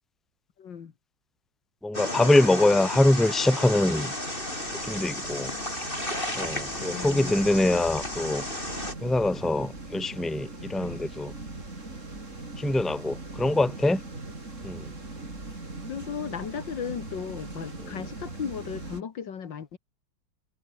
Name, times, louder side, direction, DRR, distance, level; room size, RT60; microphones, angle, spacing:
voice 1, 0.6-0.9 6.8-7.8 15.9-19.8, left 7 dB, 65° left, 2.4 m, -36 dB
voice 2, 1.8-4.1 4.8-5.5 6.3-8.4 9.0-11.3 12.6-14.0 14.6-14.9, left 2 dB, ahead, 1.9 m, -24 dB
sound 1, 1.9-8.9, left 1 dB, 25° left, 8.2 m, -33 dB
sound 2, 3.7-19.0, right 2 dB, 35° right, 4.6 m, -41 dB
omnidirectional pair, 2.2 m